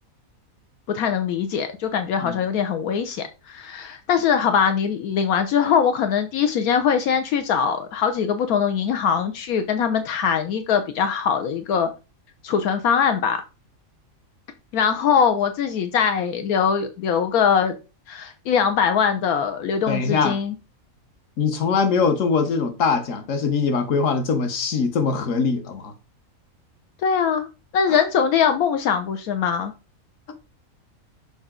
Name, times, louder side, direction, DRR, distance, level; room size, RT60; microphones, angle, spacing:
voice 1, 0.9-11.9 12.4-13.4 14.7-17.7 18.1-20.5 27.0-27.5 27.7-29.7, left 7 dB, 80° left, 1.2 m, -22 dB
voice 2, 19.9-20.4 21.4-25.9 27.9-28.0, left 5 dB, 60° left, 1.4 m, -22 dB
7.0 x 4.7 x 3.7 m
omnidirectional pair, 1.5 m